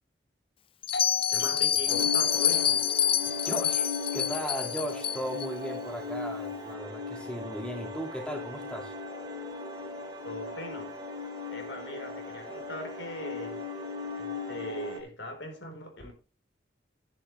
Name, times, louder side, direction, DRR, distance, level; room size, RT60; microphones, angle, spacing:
Bell, 0.8-5.5, left 9 dB, 30° left, 0.5 m, -27 dB
Doorbell, 0.9-6.3, left 4 dB, 60° left, 1.4 m, -41 dB
voice 1, 1.3-2.9 10.2-11.0 11.5-13.6 14.2-16.1, left 1 dB, 75° left, 4.3 m, -40 dB
sound 1, 1.9-15.0, left 3 dB, 25° right, 2.9 m, -38 dB
voice 2, 3.5-9.0, equal, 5° left, 2.2 m, -36 dB
11.5 x 10.5 x 3.3 m
head